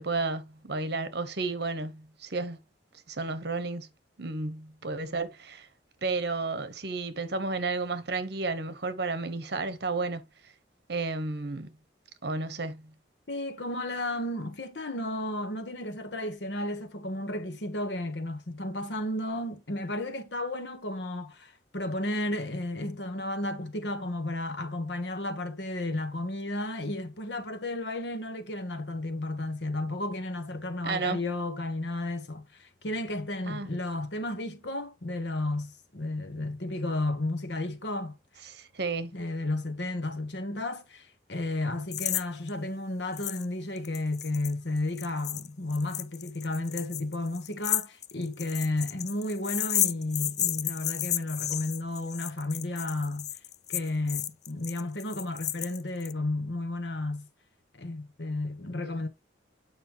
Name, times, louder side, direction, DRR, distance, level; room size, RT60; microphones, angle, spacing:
voice 1, 0.0-2.6 3.1-3.9 4.2-5.7 6.0-10.2 10.9-11.7 12.2-12.9 30.8-31.2 33.5-33.7 38.4-39.1, right 3 dB, 65° right, 1.2 m, -32 dB
voice 2, 13.3-38.2 39.1-53.3 53.7-57.3 57.7-59.1, left 2 dB, 70° left, 1.4 m, -33 dB
sound 1, 41.9-42.2 42.5-42.6 43.2-43.5 43.8-56.1, left 12 dB, 40° left, 0.5 m, -32 dB
9.1 x 5.3 x 3.1 m
head